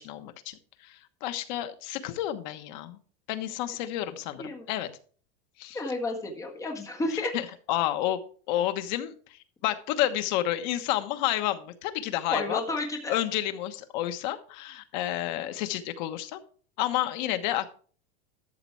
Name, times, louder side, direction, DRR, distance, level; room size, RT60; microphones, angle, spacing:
voice 1, 0.0-3.0 3.3-4.9 5.6-5.8 7.1-8.2 8.5-12.6 13.1-16.4 16.8-17.7, left 13 dB, 50° left, 9 dB, 1.2 m, -30 dB
voice 2, 5.7-7.3 12.3-13.2, left 2 dB, 10° left, 2 dB, 1.7 m, -31 dB
13.0 x 6.7 x 4.7 m, 0.43 s
supercardioid pair, 175°, 29 cm